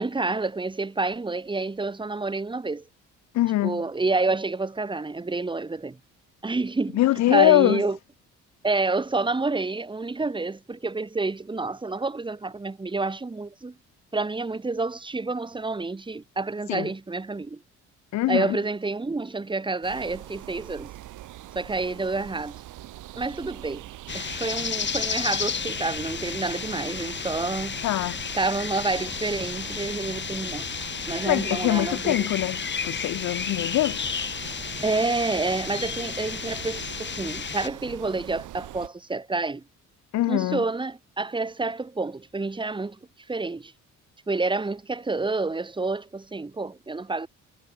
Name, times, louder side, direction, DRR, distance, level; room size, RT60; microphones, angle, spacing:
voice 1, 0.0-2.8 3.6-6.0 6.4-8.0 8.6-13.7 14.1-17.6 18.3-20.9 21.5-22.6 23.1-23.9 24.1-27.8 28.3-30.7 31.1-32.3 34.8-39.6 40.3-43.0 43.3-43.7 44.3-47.3, right 3 dB, 15° right, 1.2 m, -28 dB
voice 2, 3.3-3.8 7.0-7.8 16.7-16.9 18.1-18.6 27.8-28.2 31.3-34.1 40.1-40.6, left 15 dB, 65° left, 0.6 m, -23 dB
sound 1, 19.8-38.9, right 15 dB, 90° right, 8.0 m, -43 dB
sound 2, 24.1-37.7, left 6 dB, 35° left, 2.0 m, -32 dB
cardioid pair, 90°, 30 cm